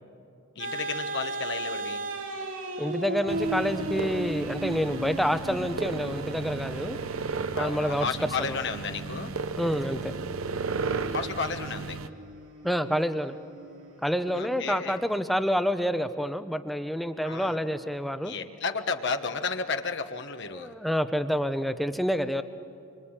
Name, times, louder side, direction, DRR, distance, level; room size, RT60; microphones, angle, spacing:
voice 1, 0.5-2.0 5.2-5.3 7.5-9.3 11.1-12.0 14.3-15.0 17.2-17.6 18.2-20.7, left 5 dB, 55° left, 6 dB, 1.3 m, -33 dB
sound 1, 0.6-15.2, right 2 dB, 65° right, 3.1 m, -37 dB
voice 2, 2.8-7.0 7.6-8.1 8.4-8.6 9.6-10.1 12.6-13.4 14.0-18.3 20.5-22.4, equal, ahead, 9 dB, 0.9 m, -28 dB
sound 2, 3.3-12.1, right 4 dB, 85° right, 0.8 m, -34 dB
26.5 x 24.5 x 9.0 m, 2.7 s
head